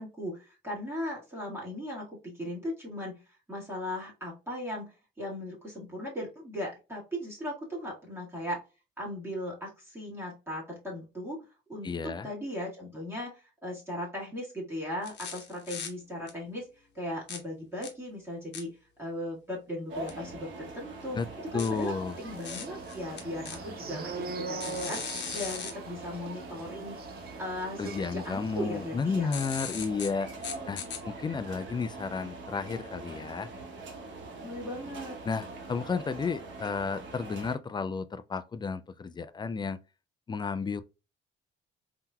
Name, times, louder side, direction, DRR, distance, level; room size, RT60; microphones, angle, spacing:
voice 1, 0.0-3.2 3.5-8.6 9.0-11.4 11.7-21.2 21.5-27.0 27.4-29.3 30.4-31.0 34.4-35.1, left 1 dB, 10° right, 1.6 m, -38 dB
voice 2, 11.8-12.3 21.1-21.3 21.5-22.2 27.8-30.3 30.7-33.5 35.3-39.8 40.3-40.8, left 5 dB, 25° left, 0.3 m, -32 dB
sound 1, 15.0-15.9 16.3-16.4 17.3-17.4 17.8-17.9 18.5-18.6 20.1-20.2 21.6-23.6 24.6-25.7 29.3-30.1 30.4-31.0, left 7 dB, 60° left, 0.9 m, -38 dB
sound 2, 19.9-37.6, right 2 dB, 65° right, 1.1 m, -43 dB
sound 3, 22.1-28.8 29.1-29.3 29.6-29.9, right 4 dB, 50° right, 0.6 m, -42 dB
3.6 x 2.8 x 2.2 m
cardioid pair, 90°, 20 cm